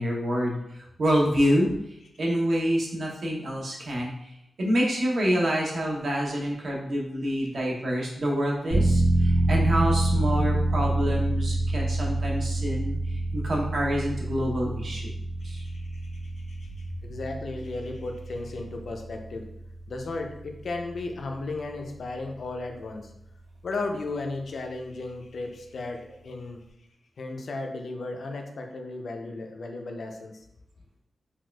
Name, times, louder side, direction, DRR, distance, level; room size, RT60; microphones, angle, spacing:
voice 1, 0.0-1.7 2.2-4.3 4.6-15.1 15.4-15.6, equal, 60° right, -2 dB, 0.7 m, -27 dB
sound 1, 8.7-21.2 21.6-21.7, right 2 dB, 85° right, 1.1 m, -27 dB
voice 2, 15.4-19.5 19.9-23.1 23.6-26.6 27.2-30.4, left 3 dB, 65° left, 4 dB, 0.4 m, -35 dB
4.2 x 2.3 x 2.2 m, 0.80 s
wide cardioid pair, 145°, 0 cm